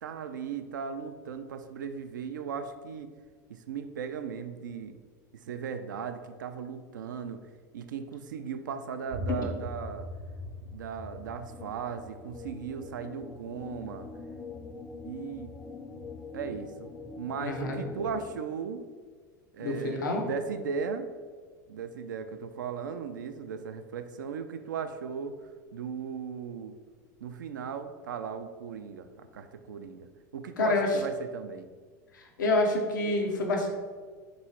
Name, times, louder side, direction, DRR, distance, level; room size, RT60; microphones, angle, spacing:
voice 1, 0.0-3.1 3.5-5.0 5.3-7.4 7.7-10.1 10.7-14.1 15.0-15.5 16.3-16.9 17.2-18.8 19.5-21.1 21.7-25.4 25.7-26.7 27.2-30.1 30.3-31.7, right 6 dB, 85° right, 8 dB, 0.4 m, -37 dB
sound 1, 9.1-14.7, left 1 dB, 55° right, 0.7 m, -41 dB
sound 2, 11.1-18.4, left 4 dB, 15° left, 0.4 m, -44 dB
voice 2, 17.4-17.8 19.6-20.2 30.6-31.0 32.1-33.7, left 2 dB, 90° left, 2 dB, 0.7 m, -27 dB
3.7 x 3.0 x 4.3 m, 1.5 s
hypercardioid pair, 95°, 10 cm